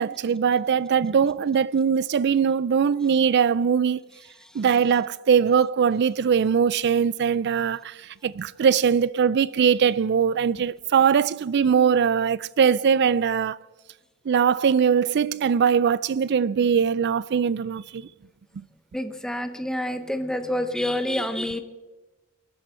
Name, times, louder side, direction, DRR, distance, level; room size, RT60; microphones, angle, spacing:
voice 1, 0.0-4.0 4.6-7.9 8.2-13.6 14.3-18.1, right 7 dB, 55° right, 0.4 m, -21 dB
voice 2, 18.9-21.6, left 1 dB, 5° left, 0.8 m, -27 dB
22.0 x 9.1 x 4.5 m
head